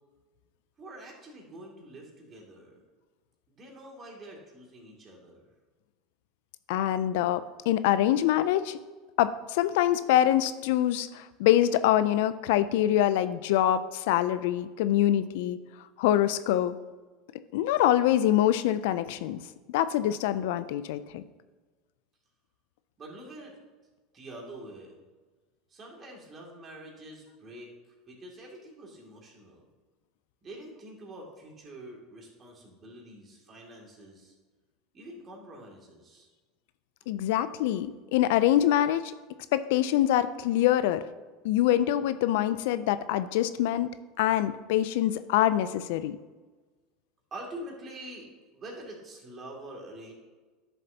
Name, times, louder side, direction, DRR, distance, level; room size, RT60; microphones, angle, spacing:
voice 1, 0.8-2.8 3.5-5.5 23.0-23.6 24.1-25.0 25.7-27.7 28.1-29.6 30.4-34.3 34.9-36.3 47.3-50.1, right 1 dB, 30° right, -1 dB, 2.5 m, -46 dB
voice 2, 6.7-8.8 9.2-15.6 16.0-16.8 17.5-19.4 19.7-21.2 37.1-39.1 39.5-41.0 41.4-43.9 44.2-46.2, left 12 dB, 75° left, 13 dB, 0.4 m, -25 dB
10.5 x 6.6 x 2.8 m, 1.3 s
supercardioid pair, 110°, 0 cm